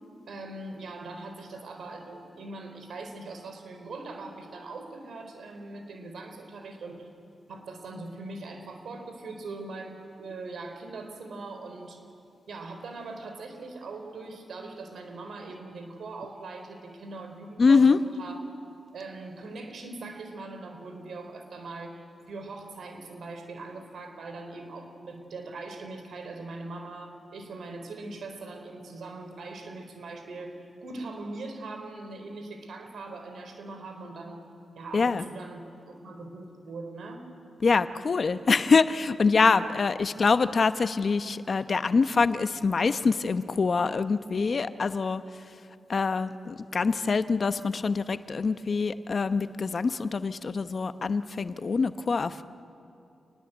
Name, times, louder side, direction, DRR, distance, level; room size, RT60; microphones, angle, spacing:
voice 1, 0.3-7.1 7.5-12.0 12.5-18.4 18.9-22.0 22.3-34.4 34.8-37.3 39.6-39.8, right 3 dB, 75° right, 5 dB, 4.1 m, -41 dB
voice 2, 17.6-18.0 34.9-35.2 37.6-45.2 45.9-52.4, left 4 dB, 55° left, 11 dB, 1.0 m, -24 dB
28.5 x 20.5 x 8.1 m, 2.7 s
cardioid pair, 50°, 0 cm